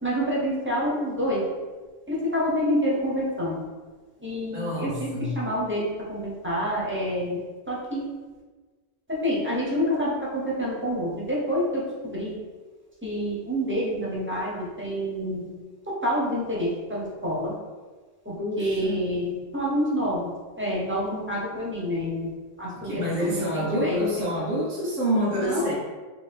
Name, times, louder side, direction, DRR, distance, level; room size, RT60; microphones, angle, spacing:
voice 1, 0.0-1.5 2.1-3.6 4.2-8.1 9.1-12.3 13.0-15.5 16.0-17.6 18.2-22.3 22.6-24.3 25.3-25.7, equal, 15° right, -6 dB, 0.5 m, -28 dB
voice 2, 4.5-5.4 18.4-19.0 22.8-25.7, equal, 85° right, -6 dB, 1.4 m, -27 dB
3.2 x 2.6 x 3.3 m, 1.4 s
omnidirectional pair, 1.2 m